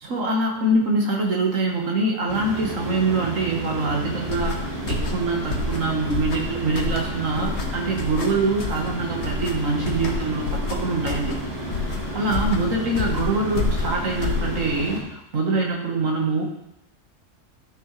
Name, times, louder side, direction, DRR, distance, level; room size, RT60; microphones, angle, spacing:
voice 1, 0.0-11.4 12.1-16.4, right 2 dB, 80° right, 0 dB, 1.9 m, -24 dB
sound 1, 2.3-15.0, right 1 dB, 30° right, 3.0 m, -32 dB
sound 2, 4.2-14.8, left 3 dB, 60° left, 1.2 m, -29 dB
12.0 x 6.1 x 3.3 m, 0.82 s
omnidirectional pair, 1.3 m